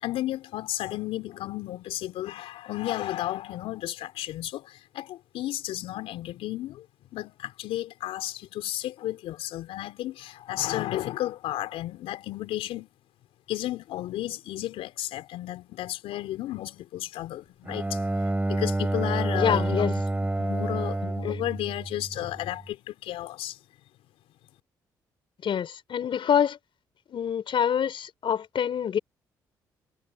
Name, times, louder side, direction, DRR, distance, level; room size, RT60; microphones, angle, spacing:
voice 1, 0.0-6.8 7.1-12.9 13.5-18.0 18.5-20.1 20.4-23.6, left 14 dB, 75° left, 4.3 m, -33 dB
Bowed string instrument, 17.6-22.5, right 2 dB, 15° right, 2.9 m, -28 dB
voice 2, 19.4-19.9 25.4-26.6 27.1-29.0, left 8 dB, 60° left, 5.4 m, -26 dB
hypercardioid pair, 50°, 10 cm